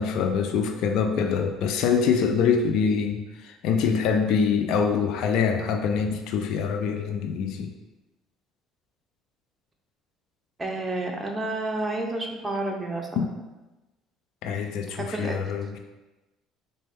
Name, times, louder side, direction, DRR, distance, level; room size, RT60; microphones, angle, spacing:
voice 1, 0.0-7.7 13.2-13.3 14.4-15.8, left 6 dB, 70° left, 6 dB, 0.3 m, -24 dB
voice 2, 10.6-13.4 14.9-15.4, right 2 dB, 25° right, 1 dB, 0.6 m, -30 dB
4.1 x 2.2 x 3.3 m, 1.1 s
supercardioid pair, 80°, 0 cm